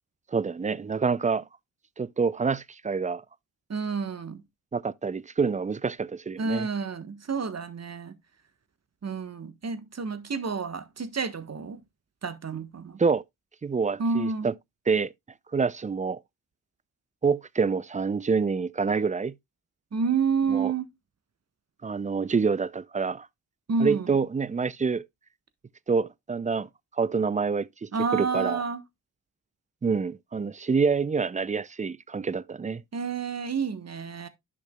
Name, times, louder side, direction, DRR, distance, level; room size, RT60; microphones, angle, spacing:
voice 1, 0.3-1.5 2.0-3.2 4.7-6.7 13.0-13.2 13.6-14.5 14.9-15.1 15.5-16.2 17.2-19.3 20.5-20.7 21.8-23.3 23.8-25.0 25.9-28.6 29.8-32.8, right 5 dB, 20° right, 0.4 m, -27 dB
voice 2, 3.7-4.4 6.4-8.1 9.0-11.8 12.2-13.0 14.0-14.5 19.9-20.9 23.7-24.1 27.9-28.8 32.9-34.3, right 5 dB, 40° right, 1.3 m, -29 dB
10.5 x 6.0 x 2.2 m
supercardioid pair, 45°, 40 cm